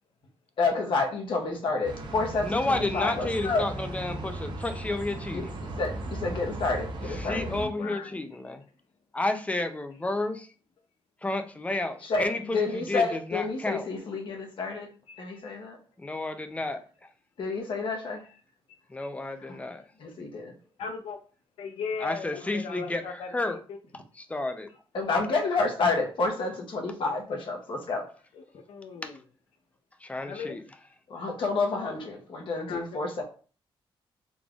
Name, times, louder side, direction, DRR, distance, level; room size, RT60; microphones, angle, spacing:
voice 1, 0.6-3.7 5.3-7.5 12.0-14.9 15.2-15.8 17.4-18.2 19.5-19.6 20.0-20.5 24.9-28.1 31.1-33.2, left 3 dB, 60° left, 1 dB, 1.0 m, -29 dB
sound 1, 1.8-7.7, right 2 dB, 50° right, 0.8 m, -37 dB
voice 2, 2.4-5.5 7.1-8.6 9.1-10.5 11.2-13.9 16.0-16.8 18.9-19.8 22.0-23.6 23.9-24.7 29.0-29.1 30.0-30.6, left 2 dB, 15° left, 7 dB, 0.5 m, -31 dB
voice 3, 7.3-8.1 8.4-8.5 15.1-15.2 20.8-21.2 21.6-23.6 28.3-29.2 30.2-30.6 32.7-33.0, left 5 dB, 80° left, 4 dB, 0.5 m, -38 dB
3.9 x 3.5 x 2.3 m, 0.39 s
cardioid pair, 110°, 10 cm